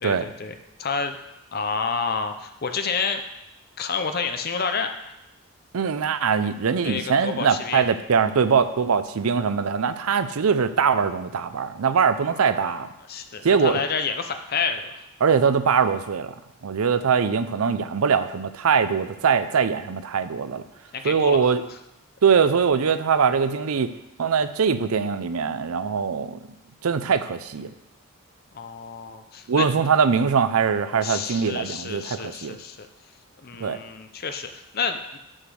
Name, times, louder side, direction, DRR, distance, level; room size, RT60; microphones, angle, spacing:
voice 1, 0.0-1.2 1.5-3.2 3.8-5.1 6.8-7.8 12.3-12.8 13.1-14.9 20.9-21.5 28.5-29.7 31.0-32.9 33.4-35.2, left 5 dB, 45° left, 7 dB, 0.6 m, -29 dB
voice 2, 5.7-12.9 13.4-13.8 15.2-16.3 16.6-20.6 21.0-21.6 22.2-23.9 24.2-26.4 26.8-27.7 29.5-32.6 33.6-33.8, right 6 dB, 75° right, 12 dB, 0.5 m, -22 dB
6.4 x 5.9 x 6.3 m, 0.89 s
head